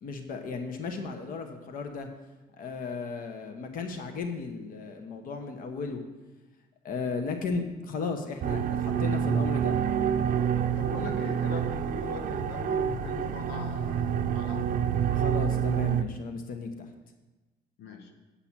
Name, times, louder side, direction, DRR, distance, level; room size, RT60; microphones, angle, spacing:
voice 1, 0.0-2.1 2.6-6.0 6.8-9.8 15.1-16.9, left 4 dB, 55° left, 6 dB, 1.1 m, -35 dB
sound 1, 8.4-16.0, right 8 dB, 55° right, 0.6 m, -27 dB
voice 2, 10.7-14.7 17.8-18.1, left 6 dB, 85° left, 5 dB, 1.1 m, -40 dB
8.6 x 5.8 x 7.3 m, 1.2 s
cardioid pair, 110°, 17 cm